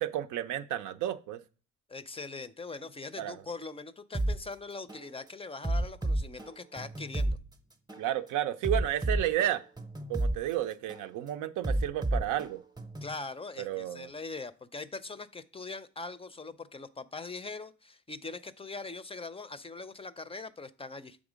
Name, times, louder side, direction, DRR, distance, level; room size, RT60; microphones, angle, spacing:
voice 1, 0.0-1.4 3.2-3.4 8.0-9.6 10.1-12.6 13.6-14.1, right 12 dB, 85° right, 10 dB, 0.6 m, -32 dB
voice 2, 1.9-7.4 13.0-21.2, left 3 dB, 20° left, 13 dB, 0.4 m, -42 dB
sound 1, 4.1-4.4 4.9-5.1 5.6-7.4 7.9-8.1 8.6-10.4 10.9-11.1 11.6-13.1, right 1 dB, 15° right, 0.7 m, -31 dB
7.1 x 3.6 x 5.0 m, 0.37 s
cardioid pair, 90°, 30 cm